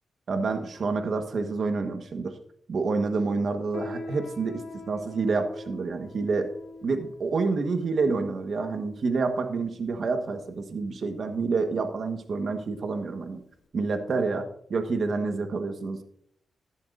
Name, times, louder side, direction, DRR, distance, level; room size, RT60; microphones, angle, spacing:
voice 1, 0.3-2.4 2.7-6.5 6.8-13.4 13.7-14.4 14.7-16.0, right 4 dB, 65° right, 7 dB, 1.3 m, -28 dB
Piano, 3.7-13.7, left 3 dB, 80° left, 1.1 m, -45 dB
13.5 x 11.5 x 2.6 m, 0.68 s
cardioid pair, 65°, 0 cm